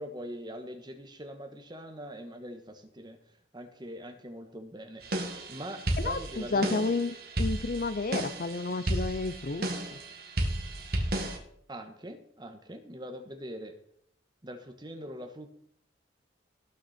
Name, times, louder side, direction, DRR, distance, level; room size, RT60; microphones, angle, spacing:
voice 1, 0.0-3.2 3.5-6.8 11.7-13.7 14.4-15.5, equal, 25° right, 6 dB, 1.3 m, -42 dB
sound 1, 5.0-11.4, right 1 dB, 55° right, 1.9 m, -33 dB
voice 2, 6.0-9.7, left 3 dB, 50° left, 14 dB, 0.5 m, -31 dB
18.5 x 6.3 x 4.3 m, 0.67 s
head